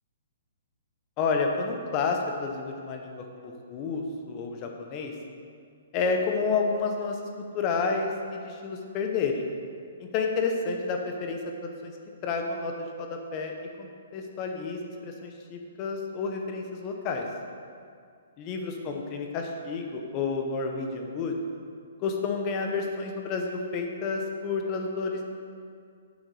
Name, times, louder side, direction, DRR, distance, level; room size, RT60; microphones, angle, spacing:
voice 1, 1.2-5.1 5.9-7.2 7.5-9.4 10.1-11.9 12.2-17.2 18.4-21.4 22.0-25.2, left 4 dB, 20° left, 3 dB, 0.6 m, -30 dB
7.9 x 6.7 x 4.7 m, 2.3 s
hypercardioid pair, 180°, 0 cm